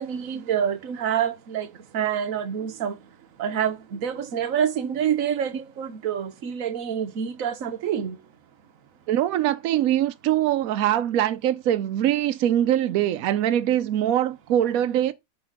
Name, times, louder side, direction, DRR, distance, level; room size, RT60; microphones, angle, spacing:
voice 1, 0.0-1.7 1.9-2.9 3.4-8.1, right 8 dB, 50° right, 1.1 m, -27 dB
voice 2, 9.1-15.1, right 11 dB, 85° right, 0.7 m, -23 dB
7.8 x 4.3 x 6.4 m
omnidirectional pair, 2.2 m